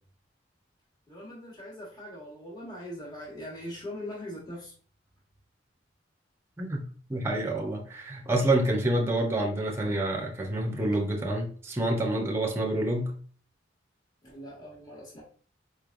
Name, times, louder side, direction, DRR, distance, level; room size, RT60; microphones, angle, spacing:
voice 1, 1.1-4.7 14.2-15.2, left 1 dB, 20° left, 1.3 m, -41 dB
voice 2, 6.6-13.1, right 1 dB, 15° right, 0.7 m, -28 dB
4.3 x 3.2 x 2.5 m
head